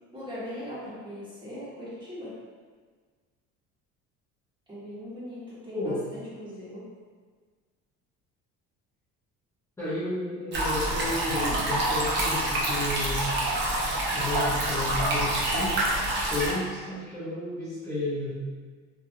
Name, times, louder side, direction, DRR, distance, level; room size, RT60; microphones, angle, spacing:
voice 1, 0.1-2.3 4.7-6.8, equal, 15° right, -12 dB, 1.5 m, -40 dB
voice 2, 9.8-13.3 14.1-15.8 16.3-18.4, left 2 dB, 10° left, -14 dB, 0.8 m, -32 dB
sound 1, 10.5-16.5, right 1 dB, 35° right, 0.7 m, -27 dB
3.0 x 2.5 x 2.6 m, 1.5 s
cardioid pair, 140°, 30 cm